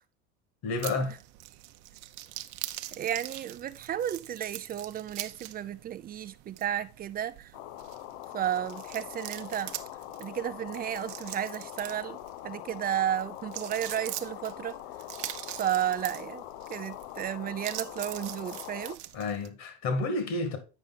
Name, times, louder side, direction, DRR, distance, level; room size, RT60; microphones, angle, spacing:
voice 1, 0.6-1.2 19.1-20.6, left 3 dB, 50° left, 2.2 m, -30 dB
sound 1, 0.8-19.5, right 15 dB, 55° right, 0.8 m, -44 dB
voice 2, 2.9-7.5 8.3-9.8 10.2-14.8 15.6-16.4 16.7-19.0, right 10 dB, 25° right, 0.5 m, -33 dB
sound 2, 7.5-19.0, left 16 dB, 70° left, 0.6 m, -43 dB
8.9 x 5.1 x 4.1 m
supercardioid pair, 115°, 34 cm